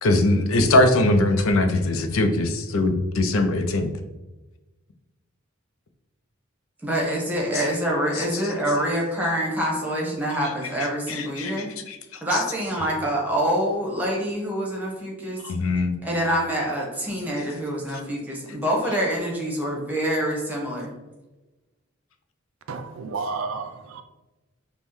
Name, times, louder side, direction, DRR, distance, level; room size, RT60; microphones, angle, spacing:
voice 1, 0.0-3.9 7.5-7.7 8.1-8.2 10.8-12.0 12.3-12.4 15.4-15.9 17.9-18.0, left 2 dB, 90° left, 0.5 m, -22 dB
voice 2, 6.8-11.7 12.2-15.4 16.0-20.9, equal, 10° right, 1.0 m, -26 dB
voice 3, 22.7-24.0, right 4 dB, 75° right, 0.4 m, -31 dB
5.3 x 2.2 x 3.0 m
head